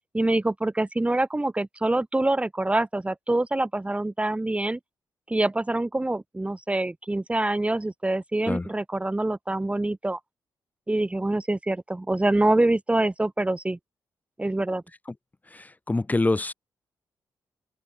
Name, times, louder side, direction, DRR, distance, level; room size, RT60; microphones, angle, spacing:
voice 1, 0.1-4.8 5.3-10.2 10.9-13.8 14.4-14.8, right 2 dB, 15° right, 1.9 m, -25 dB
voice 2, 15.5-16.5, left 2 dB, 20° left, 1.9 m, -25 dB
open air
cardioid pair, 80°, 8 cm